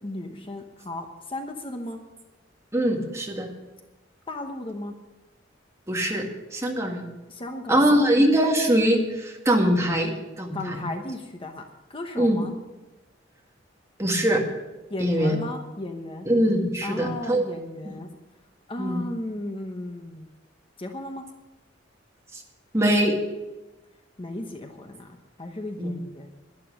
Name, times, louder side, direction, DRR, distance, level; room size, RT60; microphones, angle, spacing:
voice 1, 0.0-2.0 4.3-4.9 7.3-8.0 10.5-12.5 14.9-16.3 16.8-18.1 18.7-20.3 20.8-21.3 24.2-26.3, left 1 dB, 30° left, 4 dB, 1.1 m, -35 dB
voice 2, 2.7-3.5 5.9-6.3 6.5-7.1 7.7-10.8 12.2-12.4 14.0-14.4 15.0-15.3 16.3-17.5 18.8-19.0 22.3-22.4 22.7-23.2 25.8-25.9, right 1 dB, 15° right, 1 dB, 1.9 m, -22 dB
12.0 x 11.0 x 6.5 m, 1.1 s
head